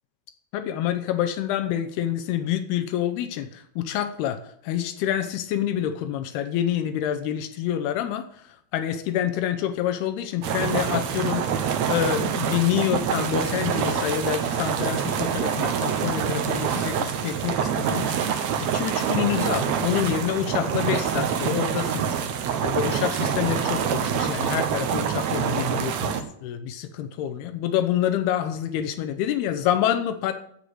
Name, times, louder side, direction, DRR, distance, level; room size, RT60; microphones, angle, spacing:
voice 1, 0.5-8.3 8.7-22.2 22.6-30.3, left 10 dB, 85° left, 8 dB, 2.8 m, -27 dB
sound 1, 10.4-26.2, right 8 dB, 75° right, 1.6 m, -26 dB
15.0 x 5.3 x 7.7 m, 0.67 s
omnidirectional pair, 4.5 m